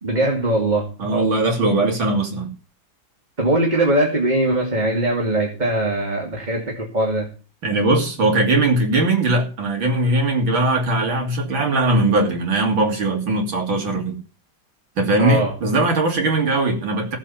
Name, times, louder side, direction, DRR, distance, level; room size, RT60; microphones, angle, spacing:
voice 1, 0.0-0.9 3.4-7.3 15.2-15.5, right 1 dB, 20° right, 0 dB, 2.4 m, -21 dB
voice 2, 1.0-2.5 7.6-14.2 15.0-17.2, right 2 dB, 80° right, 2 dB, 3.5 m, -20 dB
16.5 x 7.4 x 5.8 m, 0.36 s
omnidirectional pair, 2.1 m